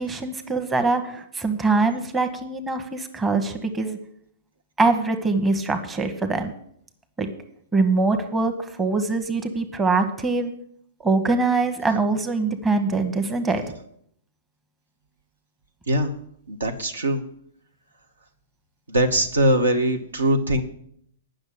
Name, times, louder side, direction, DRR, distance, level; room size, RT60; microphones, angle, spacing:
voice 1, 0.0-4.0 4.8-6.5 7.2-7.3 7.7-10.5 11.0-13.7, right 3 dB, 15° right, 6 dB, 1.0 m, -23 dB
voice 2, 16.5-17.2 18.9-20.6, right 1 dB, 70° right, 7 dB, 1.1 m, -21 dB
9.6 x 6.4 x 8.2 m, 0.67 s
figure-of-eight pair, 105°, 0 cm